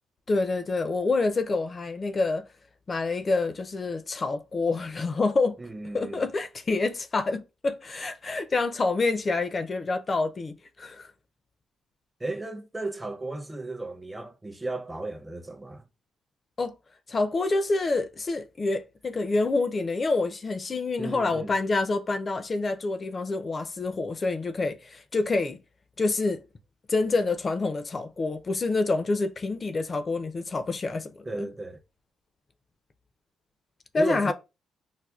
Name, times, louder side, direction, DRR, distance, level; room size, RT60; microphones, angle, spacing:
voice 1, 0.3-2.4 2.9-5.6 5.9-11.1 16.6-16.7 17.1-25.6 26.0-26.4 26.9-31.5 33.9-34.3, left 3 dB, 35° left, 0.4 m, -27 dB
voice 2, 5.6-6.3 12.2-15.9 21.0-21.6 31.2-31.8 34.0-34.3, right 2 dB, 15° right, 0.6 m, -35 dB
4.8 x 2.1 x 2.3 m
cardioid pair, 90°, 0 cm